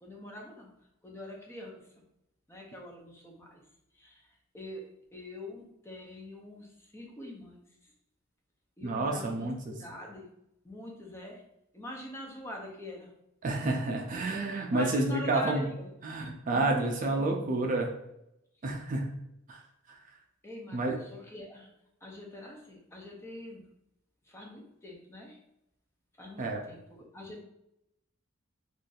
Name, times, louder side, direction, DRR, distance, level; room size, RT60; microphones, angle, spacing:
voice 1, 0.0-0.7 1.0-1.9 2.5-3.6 3.9-4.3 4.5-7.9 8.8-10.3 10.6-11.4 11.7-13.1 14.7-15.9 16.5-17.7 20.4-21.7 22.0-23.7 24.3-25.4 26.2-27.4, left 1 dB, 10° left, -1 dB, 0.6 m, -44 dB
voice 2, 8.8-9.7 13.4-15.6 16.0-17.9 18.6-19.1 19.5-19.6 19.9-20.0 20.7-21.0 26.4-26.7, right 2 dB, 40° right, 2 dB, 0.4 m, -29 dB
2.5 x 2.4 x 3.8 m, 0.83 s
head